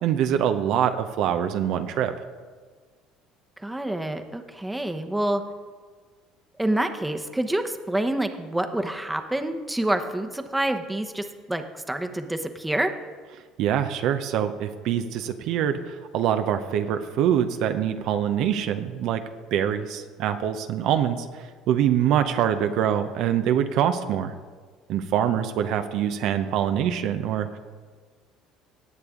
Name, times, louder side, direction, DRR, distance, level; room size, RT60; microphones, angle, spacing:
voice 1, 0.0-2.1 13.6-19.2 19.5-24.3 24.9-27.5, right 9 dB, 70° right, 8 dB, 0.6 m, -24 dB
voice 2, 3.6-5.4 6.6-12.9, right 1 dB, 10° right, 6 dB, 0.9 m, -27 dB
17.5 x 6.8 x 3.7 m, 1.5 s
supercardioid pair, 85°, 0 cm